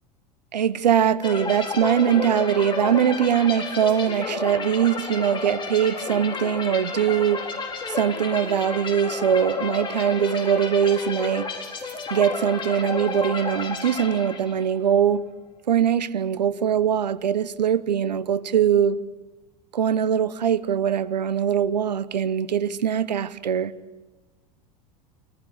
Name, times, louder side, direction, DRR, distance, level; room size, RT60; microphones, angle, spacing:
voice 1, 0.5-7.4 7.9-11.5 11.8-15.2 15.7-19.0 19.7-23.7, right 8 dB, 85° right, 0.9 m, -22 dB
sound 1, 1.2-14.8, left 4 dB, 25° left, 4.2 m, -31 dB
24.5 x 15.0 x 7.9 m
hypercardioid pair, 85°, 21 cm